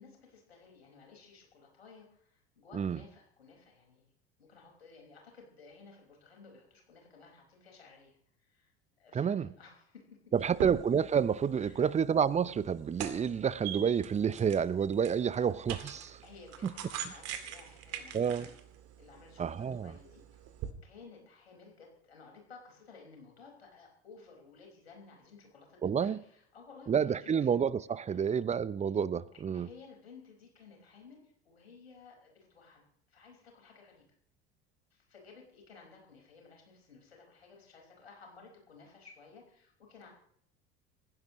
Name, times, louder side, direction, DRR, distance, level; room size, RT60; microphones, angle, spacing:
voice 1, 0.0-4.1 4.4-8.7 9.0-10.1 11.6-11.9 16.2-18.5 19.0-27.5 28.1-28.2 29.5-34.0 34.9-40.1, left 4 dB, 80° left, 5.4 m, -56 dB
voice 2, 9.1-9.5 10.3-16.2 16.6-16.7 17.0-17.1 18.1-18.5 19.4-19.9 25.8-26.2 26.9-29.7, right 7 dB, 20° right, 0.7 m, -29 dB
sound 1, 10.4-20.7, right 9 dB, 50° right, 2.2 m, -45 dB
27.5 x 16.0 x 3.2 m
figure-of-eight pair, 70°, 31 cm